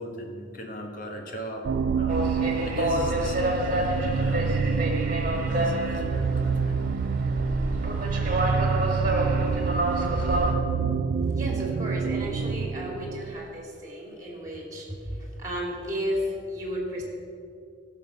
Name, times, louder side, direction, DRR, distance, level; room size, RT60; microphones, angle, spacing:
voice 1, 0.0-1.6 1.9-3.9 4.2-4.9 5.4-6.9, equal, 50° left, 2 dB, 1.6 m, -38 dB
sound 1, 1.6-13.5, right 5 dB, 65° right, 0.3 m, -27 dB
sound 2, 2.1-10.5, right 1 dB, 45° right, 1.6 m, -28 dB
voice 2, 11.3-15.1 15.4-17.0, equal, 20° right, -1 dB, 2.7 m, -33 dB
16.0 x 6.7 x 6.4 m, 2.5 s
head